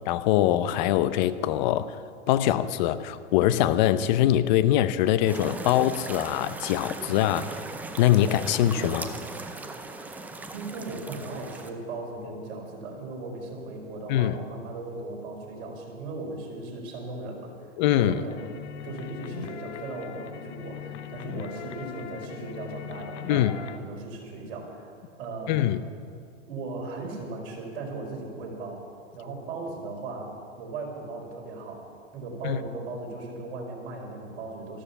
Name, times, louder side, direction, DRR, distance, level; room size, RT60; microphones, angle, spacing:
voice 1, 0.1-2.0 2.3-7.5 8.0-9.1 14.1-14.4 17.8-18.2 23.3-23.5 25.5-25.8 32.4-32.6, left 12 dB, 35° left, 14 dB, 0.7 m, -23 dB
sound 1, 5.3-11.7, right 3 dB, 5° right, 0.5 m, -38 dB
voice 2, 10.5-17.5 18.0-18.5 18.8-24.9 25.2-25.7 26.5-28.8 29.1-31.8 32.1-34.8, right 3 dB, 50° right, 0 dB, 4.6 m, -37 dB
sound 2, 18.3-23.8, left 9 dB, 60° left, 1.0 m, -40 dB
14.0 x 12.5 x 7.2 m, 2.2 s
hypercardioid pair, 130°, 39 cm